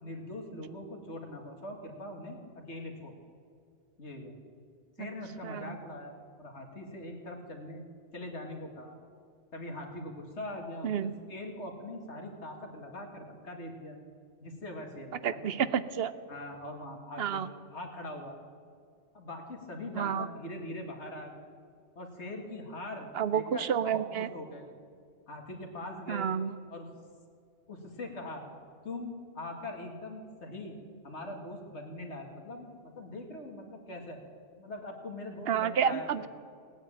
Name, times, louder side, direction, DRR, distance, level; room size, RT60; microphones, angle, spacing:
voice 1, 0.0-3.1 4.0-4.3 5.0-7.8 8.1-9.0 9.5-14.0 14.4-15.7 16.3-18.4 19.1-21.3 22.0-24.7 25.3-26.3 26.7-26.9 27.7-28.4 28.8-30.8 31.0-32.7 33.0-34.2 34.6-36.3, left 1 dB, 75° left, 2 dB, 2.4 m, -42 dB
voice 2, 5.4-5.8 10.8-11.1 15.2-16.1 17.2-17.5 20.0-20.3 23.1-24.3 26.1-26.5 35.5-36.3, right 8 dB, 65° right, 15 dB, 0.8 m, -30 dB
17.5 x 9.2 x 8.8 m, 2.2 s
omnidirectional pair, 1.2 m